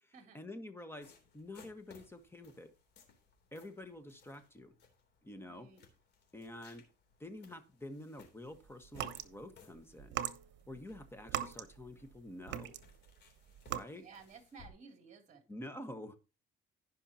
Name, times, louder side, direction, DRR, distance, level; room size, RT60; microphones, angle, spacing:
voice 1, 0.0-2.7 3.5-4.7 5.2-5.7 6.3-6.9 7.2-10.2 10.7-12.8 13.7-14.1 15.5-16.2, left 1 dB, 10° left, 9 dB, 1.5 m, -48 dB
sound 1, 1.0-14.7, left 5 dB, 60° left, 3.4 m, -63 dB
voice 2, 5.4-5.8 13.9-15.4, right 5 dB, 40° right, 4 dB, 3.0 m, -55 dB
sound 2, 8.8-9.3 10.0-12.1 12.5-13.1 13.5-13.8, right 11 dB, 65° right, 1.1 m, -39 dB
16.5 x 5.7 x 2.9 m, 0.30 s
cardioid pair, 125°, 20 cm